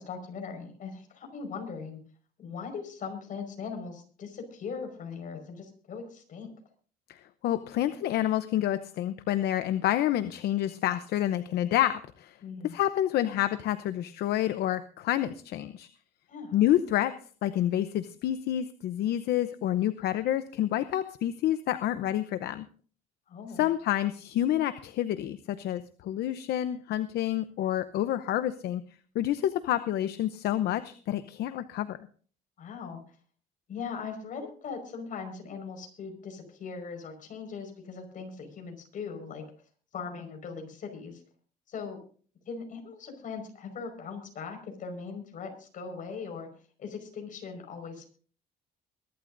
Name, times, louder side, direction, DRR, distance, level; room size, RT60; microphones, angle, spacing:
voice 1, 0.0-2.0 2.4-6.5 12.4-12.7 16.3-16.6 23.3-23.7 32.6-33.0 33.7-39.4 39.9-41.2 41.7-42.0 42.5-46.5 46.8-48.1, left 5 dB, 50° left, 5 dB, 5.2 m, -40 dB
voice 2, 7.1-12.4 12.6-15.9 16.5-17.1 17.4-22.6 23.6-28.8 29.1-32.0, left 12 dB, 70° left, 12 dB, 0.8 m, -28 dB
22.5 x 12.0 x 2.6 m, 0.43 s
cardioid pair, 110°, 17 cm